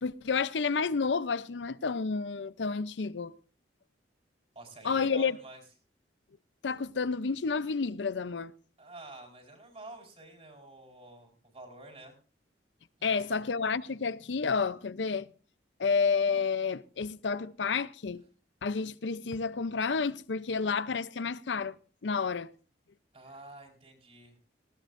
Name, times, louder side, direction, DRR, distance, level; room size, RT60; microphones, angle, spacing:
voice 1, 0.0-3.3 4.8-5.4 6.6-8.5 13.0-15.3 15.8-18.2 18.6-21.8 22.0-22.5, left 5 dB, 85° left, 0.6 m, -30 dB
voice 2, 4.5-5.6 8.8-12.1 13.0-13.4 23.1-24.3, right 2 dB, 35° right, 4.5 m, -49 dB
19.5 x 16.0 x 2.6 m
head